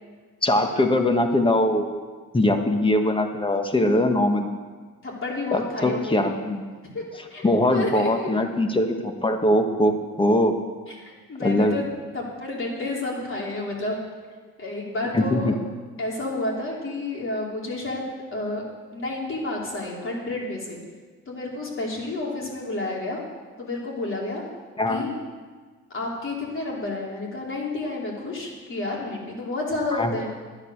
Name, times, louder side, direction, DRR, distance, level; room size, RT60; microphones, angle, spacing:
voice 1, 0.4-2.0 2.3-4.5 5.5-6.6 7.4-10.5 11.4-11.8 15.1-15.5 24.8-25.0 29.9-30.1, left 1 dB, 15° left, 5 dB, 1.5 m, -21 dB
voice 2, 5.0-6.2 6.9-7.0 7.3-8.3 10.9-11.8 12.1-14.0 14.6-15.5 16.0-18.0 18.3-18.6 18.9-20.8 21.3-23.2 23.6-24.4 24.9-25.2 25.9-30.3, left 2 dB, 45° left, -3 dB, 3.9 m, -30 dB
10.5 x 10.0 x 6.6 m, 1.5 s
cardioid pair, 90°, 30 cm